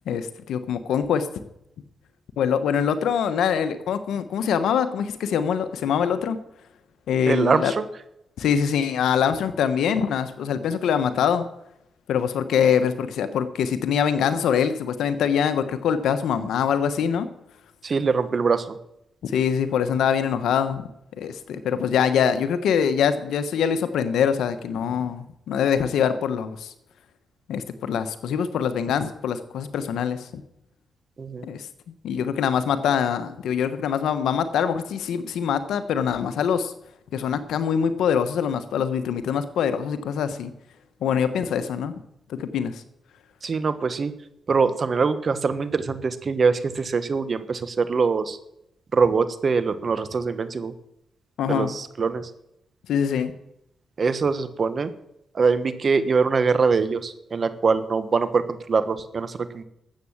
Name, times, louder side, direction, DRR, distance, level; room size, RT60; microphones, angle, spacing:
voice 1, 0.1-1.3 2.4-6.4 7.1-7.7 8.4-11.4 12.1-17.3 19.2-20.9 21.2-26.7 27.5-30.3 31.4-31.7 32.0-36.7 37.1-40.5 41.0-41.9 42.3-42.8 51.4-51.7 52.9-53.3, left 7 dB, 85° left, 11 dB, 1.1 m, -24 dB
voice 2, 7.3-7.9 17.8-18.8 31.2-31.5 43.4-44.1 44.5-48.4 48.9-50.7 51.5-52.3 54.0-54.9 55.3-59.6, right 5 dB, 50° right, 12 dB, 1.3 m, -23 dB
13.0 x 8.3 x 7.3 m, 0.80 s
cardioid pair, 70°, 0 cm